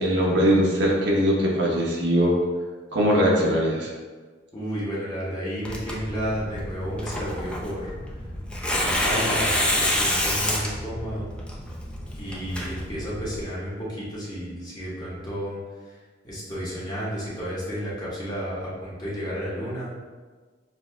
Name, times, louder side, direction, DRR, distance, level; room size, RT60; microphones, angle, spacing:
voice 1, 0.0-2.4 2.9-3.9, equal, 80° right, -3 dB, 1.0 m, -21 dB
voice 2, 4.5-7.9 8.6-11.3 12.2-15.6 16.2-19.9, equal, 25° left, -8 dB, 1.2 m, -32 dB
Tearing, 5.6-13.4, left 1 dB, 5° left, 0.5 m, -28 dB
6.8 x 2.7 x 2.2 m, 1.4 s
head